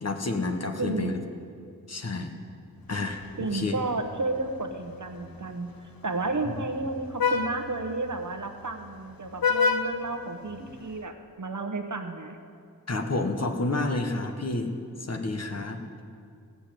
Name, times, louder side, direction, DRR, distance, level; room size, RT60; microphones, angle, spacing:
voice 1, 0.0-1.1 1.9-2.3 2.9-3.8 6.4-6.5 12.9-14.7 15.0-15.8, left 2 dB, 45° left, 4 dB, 1.2 m, -30 dB
voice 2, 0.8-1.2 3.4-5.7 6.0-12.4, right 3 dB, 60° right, 6 dB, 1.1 m, -32 dB
Vehicle horn car horn honking, 2.9-11.0, left 5 dB, 80° left, 0.7 m, -33 dB
16.5 x 6.8 x 7.6 m, 2.4 s
wide cardioid pair, 60°, 34 cm